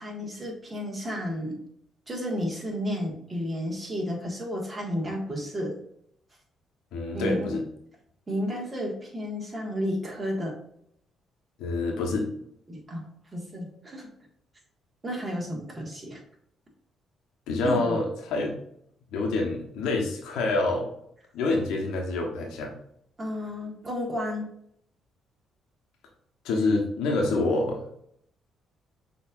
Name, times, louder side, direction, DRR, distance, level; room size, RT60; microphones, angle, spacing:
voice 1, 0.0-1.6 2.1-5.8 7.1-7.6 8.3-10.6 12.7-14.1 15.0-16.2 17.6-18.0 23.2-24.5, equal, 30° right, -1 dB, 1.7 m, -32 dB
voice 2, 6.9-7.6 11.6-12.3 17.5-18.5 19.1-20.9 21.3-22.7 26.4-27.8, left 2 dB, 85° left, 1 dB, 0.9 m, -27 dB
6.1 x 3.1 x 2.5 m, 0.70 s
supercardioid pair, 65°, 0 cm